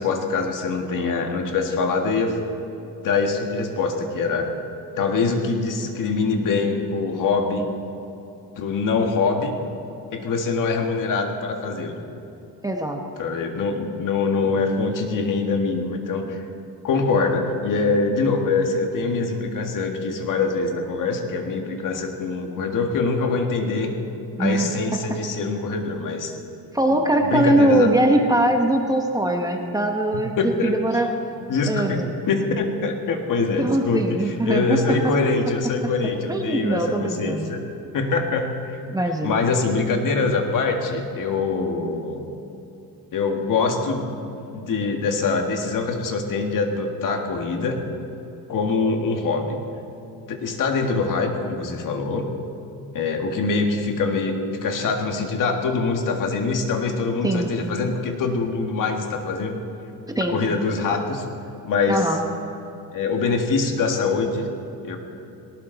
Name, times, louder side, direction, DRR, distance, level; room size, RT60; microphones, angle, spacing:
voice 1, 0.0-2.4 3.0-4.5 5.0-7.7 8.6-9.5 10.1-11.9 13.2-16.4 16.8-23.9 24.4-26.3 27.3-27.9 30.1-30.7 31.5-37.6 37.9-38.8 39.2-42.2 43.1-44.1 44.5-47.9 48.5-49.6 50.3-52.3 52.9-59.6 60.3-61.2 61.6-62.1 62.9-64.5 64.8-65.0, left 4 dB, 55° left, 3 dB, 1.9 m, -24 dB
voice 2, 12.6-13.0 24.4-24.7 26.7-31.1 31.7-32.1 33.6-35.1 36.3-37.5 38.9-39.4 57.2-57.5 60.1-60.4 61.9-62.2, right 1 dB, 10° right, 3 dB, 1.0 m, -21 dB
18.5 x 18.5 x 4.0 m, 2.9 s
cardioid pair, 155°, 38 cm